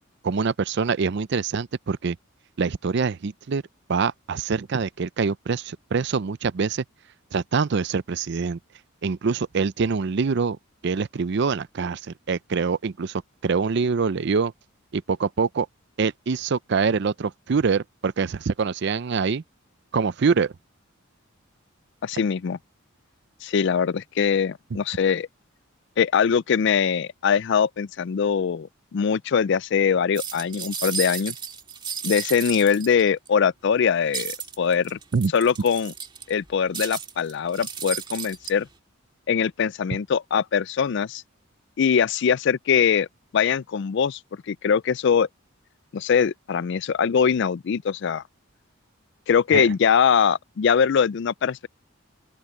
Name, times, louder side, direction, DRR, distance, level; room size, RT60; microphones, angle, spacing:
voice 1, 0.2-2.2 2.6-3.6 3.9-6.8 7.3-8.6 9.0-10.6 10.8-14.5 14.9-15.7 16.0-19.4 19.9-20.5 35.1-35.3 49.5-49.6, right 5 dB, 55° right, 0.5 m, -24 dB
voice 2, 22.0-22.6 23.4-25.3 26.0-31.3 32.0-35.0 35.3-35.9 36.3-38.7 39.3-41.2 41.8-43.1 43.3-44.2 44.5-45.3 45.9-48.2 49.3-51.7, left 7 dB, 60° left, 0.4 m, -22 dB
sound 1, 30.1-33.3 34.1-36.3 36.7-38.5, right 6 dB, 25° right, 1.9 m, -33 dB
open air
head